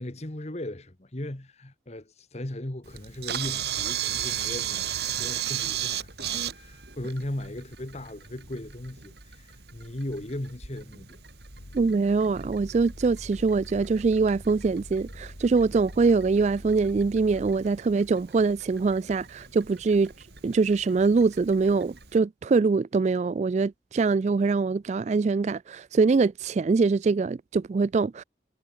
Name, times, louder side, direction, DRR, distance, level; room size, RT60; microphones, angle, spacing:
voice 1, 0.0-11.2, left 1 dB, 35° left, 1.5 m, -37 dB
Camera, 2.9-22.2, right 10 dB, 60° right, 6.8 m, -37 dB
sound 1, 11.6-17.8, equal, 65° left, 5.3 m, -44 dB
voice 2, 11.7-20.1 20.4-28.2, right 4 dB, 40° right, 0.3 m, -23 dB
head